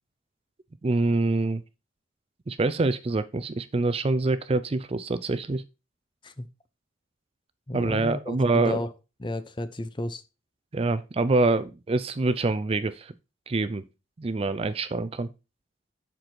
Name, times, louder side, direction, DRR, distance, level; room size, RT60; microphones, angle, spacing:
voice 1, 0.8-1.6 2.5-5.6 7.7-8.8 10.7-13.1 13.5-13.9 14.2-15.3, right 3 dB, 30° right, 0.4 m, -25 dB
voice 2, 7.7-8.9 9.2-10.2, left 1 dB, 25° left, 0.7 m, -32 dB
7.8 x 6.1 x 4.4 m
head